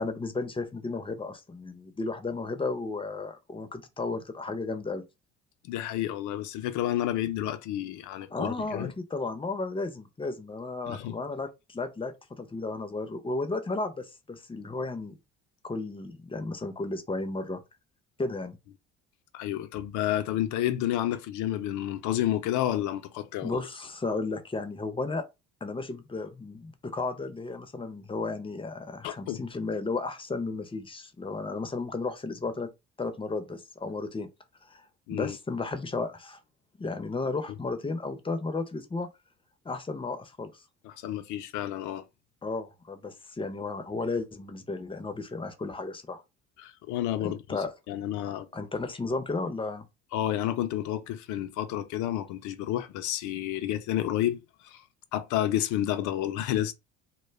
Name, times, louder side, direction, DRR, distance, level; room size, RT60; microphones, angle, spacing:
voice 1, 0.0-5.0 8.3-15.2 15.6-17.6 18.2-18.6 23.4-25.2 25.6-32.7 33.0-34.3 34.6-34.8 35.1-36.4 36.8-39.1 39.6-40.6 42.4-46.2 47.2-47.7 48.3-49.9, left 3 dB, 15° left, 0.6 m, -34 dB
voice 2, 5.6-8.9 10.9-11.2 19.3-23.6 29.0-29.4 35.1-35.4 40.8-42.0 46.6-47.6 47.9-48.5 50.1-54.8 55.1-56.7, left 12 dB, 60° left, 0.6 m, -30 dB
2.2 x 2.2 x 3.3 m
hypercardioid pair, 65°, 33 cm